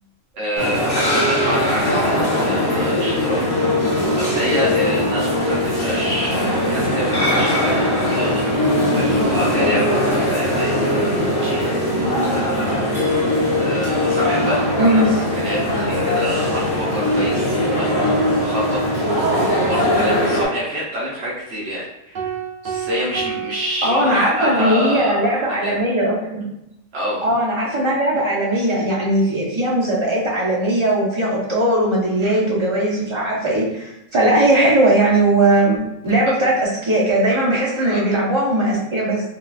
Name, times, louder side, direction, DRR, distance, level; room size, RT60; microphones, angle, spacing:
voice 1, 0.3-3.5 4.2-8.4 8.8-13.1 13.6-18.8 19.6-22.3 22.6-25.8 26.9-27.2 32.2-32.4 37.8-38.1, equal, 65° right, -7 dB, 1.0 m, -27 dB
sound 1, 0.6-20.5, left 1 dB, 20° left, 0.9 m, -20 dB
sound 2, 22.1-24.6, right 8 dB, 80° right, 0.4 m, -30 dB
voice 2, 23.8-26.5 27.2-39.2, right 1 dB, 30° right, -6 dB, 0.6 m, -19 dB
3.9 x 2.3 x 2.4 m, 0.87 s
omnidirectional pair, 1.4 m